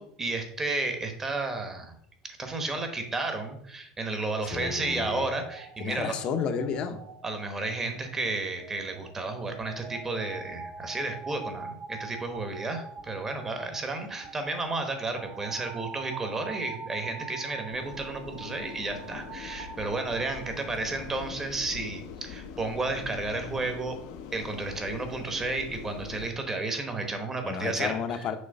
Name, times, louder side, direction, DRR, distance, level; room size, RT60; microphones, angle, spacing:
voice 1, 0.0-1.9 2.2-6.1 7.2-24.0 24.3-28.3, right 3 dB, 15° right, 6 dB, 1.1 m, -32 dB
voice 2, 4.5-5.3 5.8-7.0 27.4-28.4, left 6 dB, 45° left, 8 dB, 0.7 m, -31 dB
sound 1, 4.5-21.3, right 5 dB, 45° right, 0.5 m, -45 dB
sound 2, 17.7-26.3, left 7 dB, 75° left, 0.7 m, -43 dB
6.4 x 3.1 x 5.3 m, 0.71 s
supercardioid pair, 135°, 2 cm